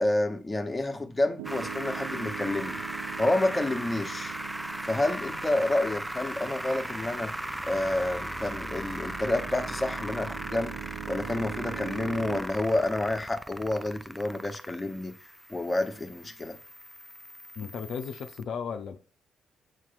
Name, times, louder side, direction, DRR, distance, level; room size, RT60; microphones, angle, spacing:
voice 1, 0.0-4.4 4.8-7.3 7.7-10.8 11.1-15.2 15.5-16.6, left 2 dB, 15° left, 1.2 m, -29 dB
sound 1, 1.4-18.4, right 1 dB, 10° right, 0.4 m, -38 dB
Piano, 1.4-12.4, right 15 dB, 75° right, 0.3 m, -43 dB
voice 2, 17.6-19.0, left 6 dB, 60° left, 0.6 m, -35 dB
7.9 x 2.9 x 5.8 m
figure-of-eight pair, 40°, 0 cm